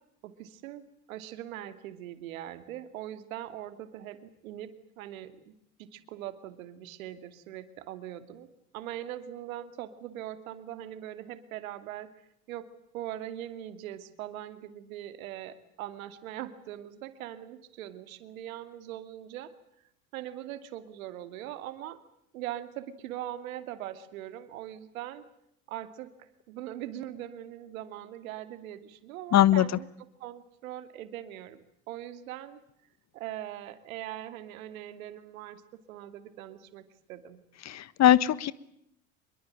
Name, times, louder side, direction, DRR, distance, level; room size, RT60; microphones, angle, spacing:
voice 1, 0.2-5.5 5.8-8.5 8.7-12.1 12.5-12.7 12.9-19.5 20.1-22.0 22.3-25.2 25.7-26.1 26.5-29.9 30.2-32.6 33.1-37.4, right 12 dB, 75° right, 10 dB, 2.6 m, -41 dB
voice 2, 29.3-29.7 37.6-38.5, left 12 dB, 40° left, 18 dB, 1.3 m, -21 dB
25.5 x 22.5 x 9.0 m, 0.75 s
hypercardioid pair, 75°, 42 cm